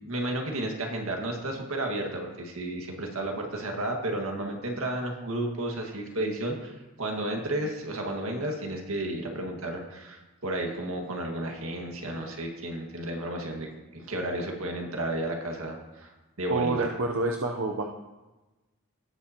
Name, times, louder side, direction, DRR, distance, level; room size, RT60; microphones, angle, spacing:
voice 1, 0.0-13.7 13.9-16.1 16.4-16.9, right 1 dB, 75° right, 1 dB, 1.8 m, -32 dB
voice 2, 16.5-17.8, right 3 dB, 60° right, 2 dB, 0.7 m, -28 dB
18.0 x 7.0 x 2.9 m, 1.1 s
head